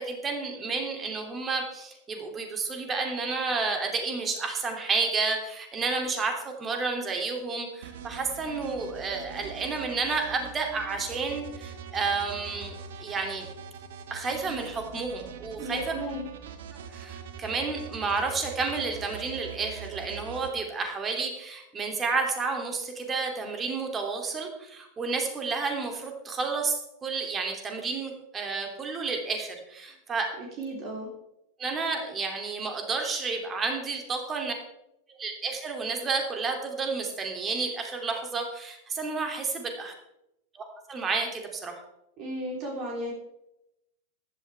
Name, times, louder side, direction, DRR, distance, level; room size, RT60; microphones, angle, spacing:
voice 1, 0.0-12.7 13.0-13.5 14.1-15.9 16.9-26.8 27.0-30.3 31.6-34.5 35.2-39.9 40.5-41.7, right 4 dB, 20° right, 3 dB, 2.7 m, -31 dB
sound 1, 7.8-20.5, right 7 dB, 55° right, 1.3 m, -43 dB
voice 2, 15.6-16.3 30.4-31.1 42.2-43.1, right 1 dB, 40° right, -1 dB, 3.5 m, -35 dB
15.0 x 12.0 x 3.4 m, 0.85 s
figure-of-eight pair, 90°, 0 cm